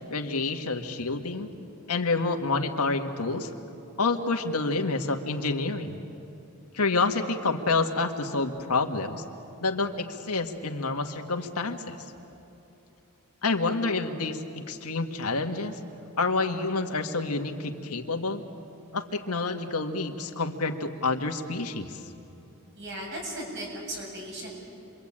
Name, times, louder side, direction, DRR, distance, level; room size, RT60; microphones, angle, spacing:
voice 1, 0.1-1.5 1.9-3.5 4.0-6.0 6.7-9.2 9.6-12.0 13.4-15.8 16.2-18.4 18.9-22.0, left 3 dB, 90° left, 5 dB, 1.7 m, -28 dB
voice 2, 22.7-24.5, right 1 dB, 55° right, -1 dB, 7.9 m, -36 dB
28.0 x 23.5 x 8.8 m, 2.8 s
head